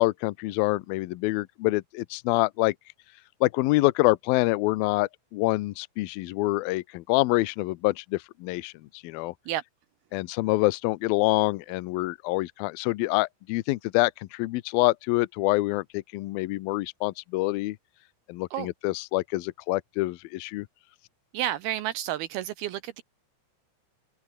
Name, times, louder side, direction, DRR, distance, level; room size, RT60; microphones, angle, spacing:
voice 1, 0.0-2.8 3.4-9.3 10.1-17.8 18.3-20.7, left 20 dB, 90° left, 2.1 m, -26 dB
voice 2, 21.3-23.0, right 12 dB, 80° right, 2.3 m, -30 dB
omnidirectional pair, 5.3 m